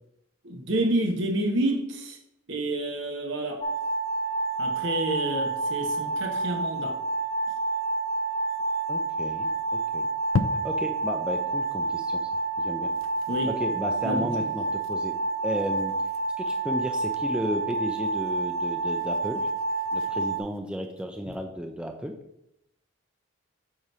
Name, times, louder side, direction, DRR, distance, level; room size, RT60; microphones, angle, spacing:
voice 1, 0.4-2.2 2.5-3.6 4.6-7.0 13.3-13.5 14.0-14.5, right 1 dB, 60° right, 3 dB, 1.3 m, -29 dB
sound 1, 3.6-20.4, right 2 dB, 30° left, 1.1 m, -29 dB
voice 2, 8.9-9.5 9.9-10.1 10.6-12.3 12.6-12.9 13.6-15.1 15.4-15.9 16.4-19.5 19.9-22.1, equal, 5° right, 3 dB, 0.4 m, -33 dB
sound 2, 9.2-11.1 11.5-11.6 11.9-12.0 12.3-12.5 12.8-21.4, left 4 dB, 70° left, 0.4 m, -39 dB
8.8 x 3.2 x 5.5 m, 0.80 s
head